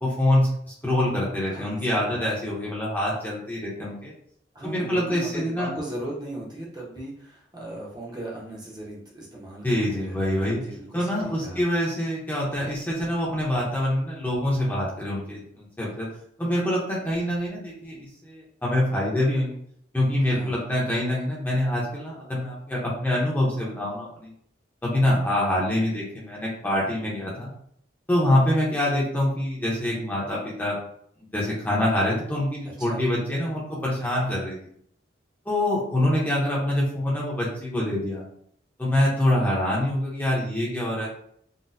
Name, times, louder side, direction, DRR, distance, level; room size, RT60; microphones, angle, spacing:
voice 1, 0.0-4.1 4.6-5.7 9.6-10.6 10.9-16.1 16.4-19.6 19.9-24.3 24.8-27.5 28.1-30.8 31.2-34.6 35.5-38.2 38.8-41.1, left 1 dB, 10° left, -5 dB, 0.6 m, -25 dB
voice 2, 1.5-2.2 4.5-11.8 20.2-20.6 32.8-33.0, right 1 dB, 20° right, -4 dB, 0.7 m, -38 dB
4.0 x 2.1 x 2.6 m, 0.66 s
head